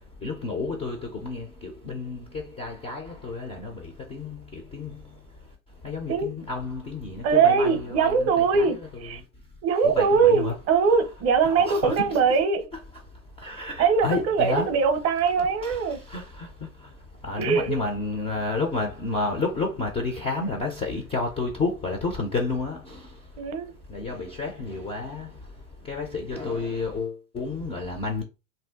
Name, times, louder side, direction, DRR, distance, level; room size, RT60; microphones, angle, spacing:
voice 1, 0.2-5.0 5.8-9.2 9.8-10.6 11.4-12.2 13.4-14.7 15.6-16.5 17.2-23.0 23.9-25.3 25.9-28.2, left 3 dB, 15° left, 0.3 m, -31 dB
voice 2, 7.2-9.2 9.6-12.7 13.8-16.0 17.4-17.8 23.4-23.7, right 5 dB, 40° right, 0.6 m, -22 dB
2.6 x 2.1 x 3.4 m
hypercardioid pair, 100°, 41 cm